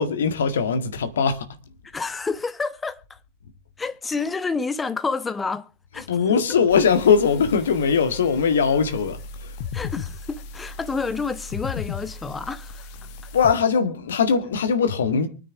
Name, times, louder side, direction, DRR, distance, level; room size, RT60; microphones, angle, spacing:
voice 1, 0.0-1.5 6.1-9.5 13.3-15.3, left 6 dB, 65° left, 1.8 m, -21 dB
voice 2, 1.9-3.2 3.8-5.7 5.9-6.1 9.7-12.9, left 4 dB, 15° left, 1.1 m, -29 dB
sound 1, 6.7-13.5, left 6 dB, 45° left, 1.4 m, -36 dB
24.0 x 9.5 x 3.6 m
figure-of-eight pair, 90°, 0 cm